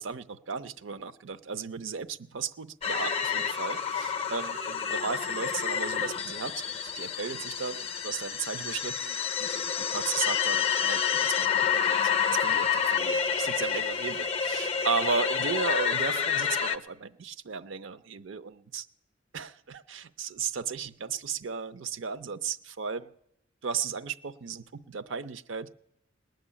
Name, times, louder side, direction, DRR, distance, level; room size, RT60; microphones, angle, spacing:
voice 1, 0.0-18.9 19.3-23.1 23.6-25.7, right 5 dB, 70° right, 14 dB, 0.6 m, -35 dB
sound 1, 2.8-16.8, left 7 dB, 30° left, 0.5 m, -29 dB
19.5 x 6.6 x 9.9 m, 0.83 s
head